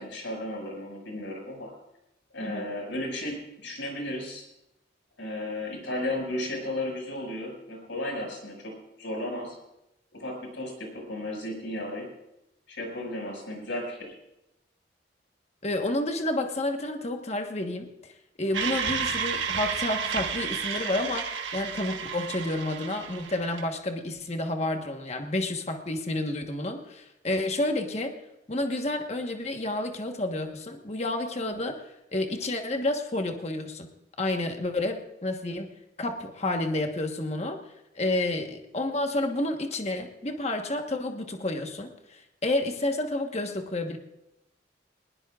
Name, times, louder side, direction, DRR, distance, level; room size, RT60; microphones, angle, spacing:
voice 1, 0.0-1.7 2.3-4.5 5.2-9.6 10.1-12.1 12.7-14.1, left 1 dB, 80° left, 1 dB, 5.8 m, -34 dB
voice 2, 15.6-18.1 18.4-28.2 28.5-31.8 32.1-33.9 34.2-35.7 36.0-37.6 37.9-44.0, left 1 dB, 35° left, 4 dB, 1.2 m, -30 dB
sound 1, 18.5-23.6, right 6 dB, 80° right, 1.4 m, -31 dB
21.0 x 20.0 x 2.4 m, 0.88 s
head